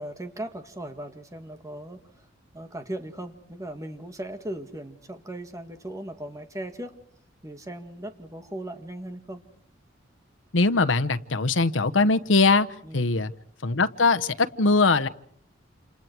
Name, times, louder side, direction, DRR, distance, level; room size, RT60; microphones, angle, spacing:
voice 1, 0.0-2.0 2.5-6.9 7.4-9.4 12.8-13.1, right 1 dB, 15° right, 7 dB, 2.0 m, -38 dB
voice 2, 10.5-12.7 12.9-13.3 13.6-15.1, left 3 dB, 90° left, 11 dB, 1.0 m, -21 dB
28.5 x 28.0 x 4.7 m, 0.62 s
head